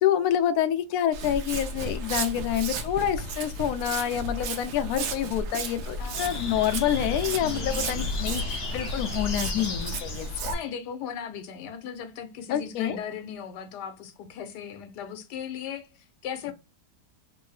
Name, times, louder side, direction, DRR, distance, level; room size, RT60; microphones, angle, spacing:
voice 1, 0.0-10.5 12.5-13.0, left 10 dB, 70° left, 1.0 m, -27 dB
Walk footsteps, 1.1-10.5, right 2 dB, 80° right, 1.3 m, -33 dB
voice 2, 6.0-6.7 7.4-7.8 10.5-16.5, left 8 dB, 90° left, 1.2 m, -38 dB
sound 1, 6.1-10.5, left 3 dB, 45° left, 0.9 m, -36 dB
3.4 x 2.6 x 3.2 m
omnidirectional pair, 1.8 m